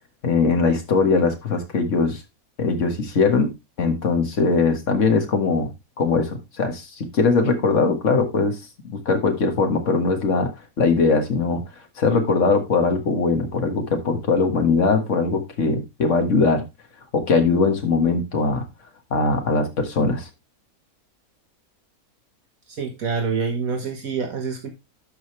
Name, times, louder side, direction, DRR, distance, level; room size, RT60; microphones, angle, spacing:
voice 1, 0.2-2.2 2.6-3.5 3.8-5.7 6.0-8.6 8.8-10.5 10.8-11.6 12.0-16.6 17.1-18.7 19.1-20.3, left 4 dB, 55° left, 5 dB, 1.9 m, -20 dB
voice 2, 22.7-24.7, right 5 dB, 70° right, 3 dB, 1.8 m, -26 dB
12.0 x 5.3 x 3.1 m, 0.23 s
omnidirectional pair, 1.6 m